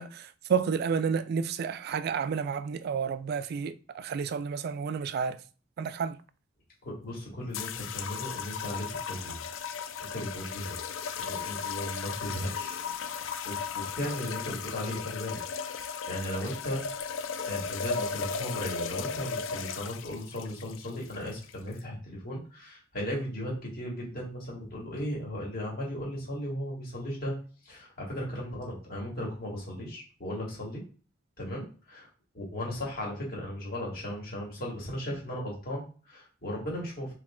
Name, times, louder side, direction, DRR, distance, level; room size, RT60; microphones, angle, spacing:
voice 1, 0.0-5.4 5.8-6.2, right 6 dB, 55° right, 0.3 m, -30 dB
voice 2, 6.8-9.4 10.1-10.7 11.2-12.8 13.4-15.4 15.7-16.9 17.5-27.3 27.7-30.8 31.4-32.1 32.3-37.1, equal, 50° left, 2.0 m, -36 dB
sound 1, 7.5-21.8, left 6 dB, 85° left, 0.4 m, -36 dB
3.3 x 3.0 x 3.6 m
head